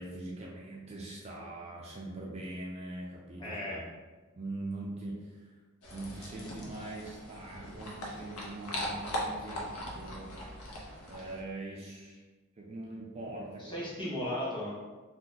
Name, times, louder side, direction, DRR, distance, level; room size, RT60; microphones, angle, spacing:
voice 1, 0.0-3.9 4.3-5.5 5.9-10.4 11.1-12.2 12.6-13.8 14.0-14.1, right 2 dB, 30° right, -3 dB, 0.4 m, -42 dB
voice 2, 3.4-3.8 13.6-14.7, left 1 dB, 20° left, -7 dB, 0.9 m, -35 dB
sound 1, 5.8-11.4, equal, 75° left, 0.7 m, -40 dB
2.7 x 2.2 x 3.8 m, 1.3 s
head